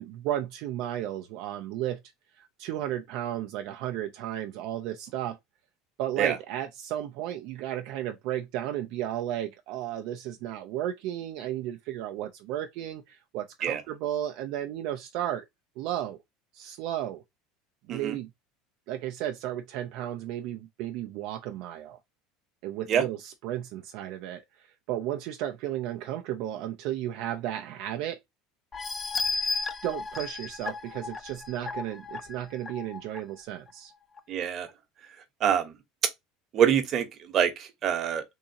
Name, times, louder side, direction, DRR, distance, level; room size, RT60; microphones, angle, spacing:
voice 1, 0.0-2.0 2.3-5.4 6.0-15.4 15.8-16.2 16.5-17.2 17.9-18.3 18.9-22.0 22.6-28.2 29.8-33.9, right 12 dB, 65° right, 0.5 m, -34 dB
sound 1, 28.7-33.2 33.7-33.8 34.2-34.3, left 3 dB, 25° left, 0.5 m, -34 dB
voice 2, 34.3-34.7 35.4-35.7 36.5-38.2, right 8 dB, 45° right, 1.0 m, -25 dB
3.6 x 2.8 x 2.8 m
supercardioid pair, 110°, 0 cm